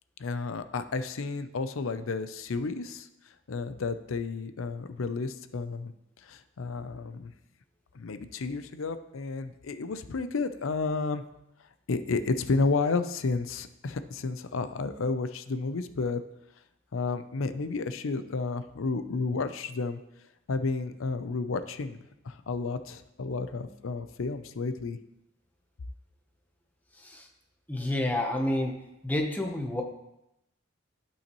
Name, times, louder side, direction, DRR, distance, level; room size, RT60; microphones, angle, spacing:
voice 1, 0.2-3.1 3.5-5.9 6.2-7.3 7.9-11.2 11.9-16.2 16.9-20.0 20.5-25.0, left 4 dB, 80° left, 11 dB, 0.5 m, -31 dB
voice 2, 27.7-28.7 29.0-29.8, left 1 dB, 10° left, 2 dB, 0.8 m, -29 dB
11.5 x 5.6 x 3.0 m, 0.87 s
head